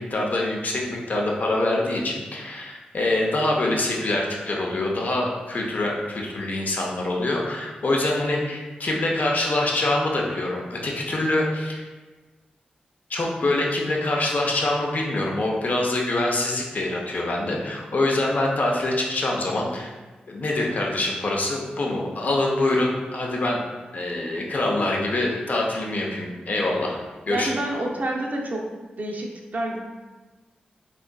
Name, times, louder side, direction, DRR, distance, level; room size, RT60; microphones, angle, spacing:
voice 1, 0.0-11.8 13.1-19.9 20.3-23.6 23.9-27.0 27.3-27.5, left 2 dB, 55° left, -1 dB, 0.6 m, -25 dB
voice 2, 27.3-28.7 29.0-29.8, right 1 dB, 55° right, 0 dB, 0.5 m, -28 dB
3.6 x 2.3 x 2.2 m, 1.3 s
cardioid pair, 45°, 3 cm